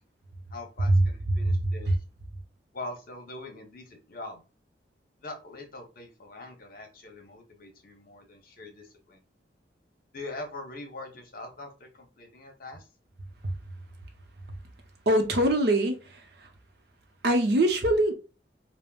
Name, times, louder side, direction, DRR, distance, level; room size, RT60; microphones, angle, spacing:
voice 1, 0.5-1.9 2.7-4.4 5.2-9.2 10.1-12.9, left 2 dB, 55° left, 0.9 m, -43 dB
voice 2, 15.1-16.5 17.2-18.1, right 1 dB, 65° right, 0.7 m, -24 dB
3.5 x 2.1 x 2.3 m
head